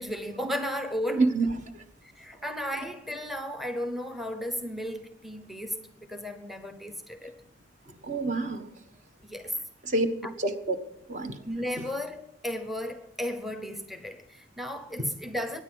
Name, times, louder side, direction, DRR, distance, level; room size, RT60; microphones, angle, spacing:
voice 1, 0.0-1.5 2.0-7.4 9.2-9.6 10.2-10.3 11.4-15.6, equal, ahead, 0.7 m, -34 dB
voice 2, 1.1-1.5 8.0-8.7 9.8-10.1 10.4-10.7 11.1-11.4 15.0-15.1, right 3 dB, 45° right, 1.4 m, -27 dB
22.0 x 9.7 x 6.3 m
head